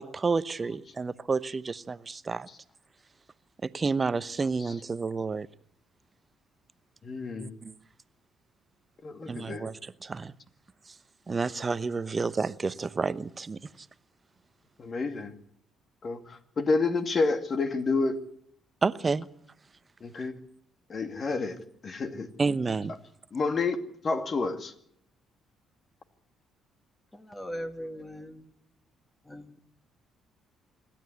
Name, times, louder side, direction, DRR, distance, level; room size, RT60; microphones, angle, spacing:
voice 1, 0.0-2.5 3.6-5.5 7.4-7.7 9.3-10.3 11.3-13.6 18.8-19.3 22.4-22.9, right 4 dB, 30° right, 0.9 m, -30 dB
voice 2, 7.0-7.6 9.0-9.7 14.8-15.3 16.0-18.2 20.0-20.3 20.9-22.3 22.9-23.0 23.3-24.7, left 3 dB, 40° left, 2.4 m, -29 dB
voice 3, 27.1-28.5 29.3-29.6, equal, 15° left, 2.2 m, -39 dB
26.5 x 12.5 x 9.7 m
figure-of-eight pair, 45°, 0 cm